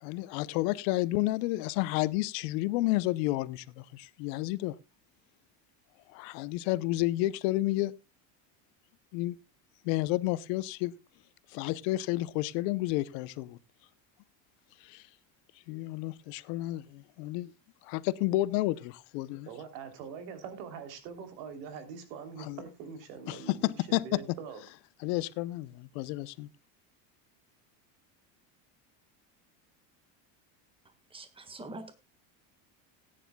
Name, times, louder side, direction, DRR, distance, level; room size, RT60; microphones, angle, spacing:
voice 1, 0.0-4.7 6.1-7.9 9.1-9.4 9.8-10.9 11.5-13.6 14.8-15.0 15.7-17.5 17.8-19.5 22.4-22.6 23.3-24.2 25.0-26.5, left 18 dB, 80° left, 0.8 m, -31 dB
voice 2, 19.5-24.6, right 6 dB, 85° right, 3.2 m, -43 dB
voice 3, 31.1-31.9, right 2 dB, 10° right, 1.5 m, -44 dB
18.5 x 10.0 x 2.2 m
cardioid pair, 145°, 48 cm